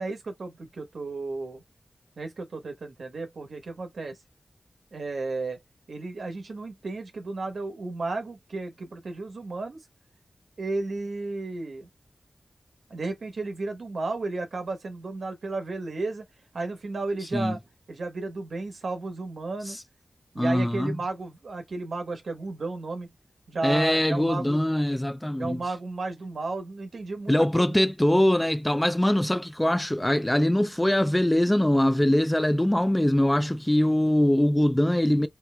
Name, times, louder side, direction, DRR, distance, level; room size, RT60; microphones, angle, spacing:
voice 1, 0.0-1.6 2.2-4.2 4.9-5.6 5.9-9.8 10.6-11.9 12.9-16.2 16.5-17.6 17.9-19.8 20.3-23.1 23.5-24.6 25.4-27.7, right 3 dB, 80° right, 1.1 m, -33 dB
voice 2, 20.4-21.0 23.6-25.6 27.3-35.3, left 1 dB, 10° left, 0.3 m, -23 dB
4.3 x 2.5 x 2.2 m
wide cardioid pair, 110°, 0 cm